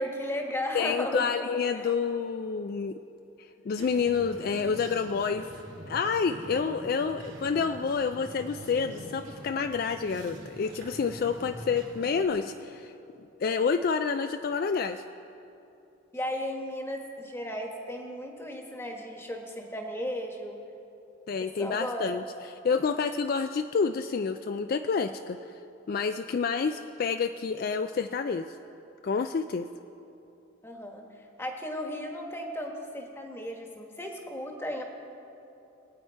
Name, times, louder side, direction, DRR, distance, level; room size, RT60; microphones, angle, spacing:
voice 1, 0.0-1.3 1.8-1.9 16.1-20.6 21.4-22.1 30.6-31.1 31.4-34.8, equal, 10° left, 2 dB, 1.2 m, -35 dB
voice 2, 0.7-3.0 3.4-5.5 5.9-12.9 13.4-15.0 21.3-22.2 22.5-25.4 25.9-28.5 29.0-29.7, left 5 dB, 45° left, 8 dB, 0.3 m, -28 dB
sound 1, 3.8-12.3, right 1 dB, 65° right, 3.3 m, -44 dB
22.5 x 8.8 x 4.6 m, 2.8 s
head